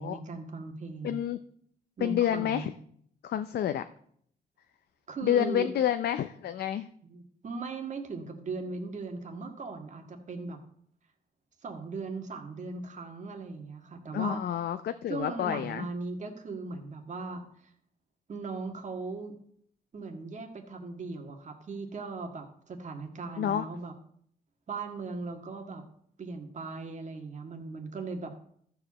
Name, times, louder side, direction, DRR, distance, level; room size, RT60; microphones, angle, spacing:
voice 1, 0.0-1.2 2.0-2.7 5.1-5.7 7.0-10.6 11.6-14.4 15.1-17.4 18.3-19.4 19.9-23.9 24.7-25.8 26.2-28.3, right 4 dB, 45° right, 4 dB, 1.8 m, -38 dB
voice 2, 1.0-1.4 2.0-2.7 3.2-3.8 5.2-6.9 14.1-15.9 23.4-23.7, left 10 dB, 75° left, 10 dB, 0.5 m, -29 dB
13.5 x 5.0 x 7.3 m, 0.64 s
cardioid pair, 105°, 17 cm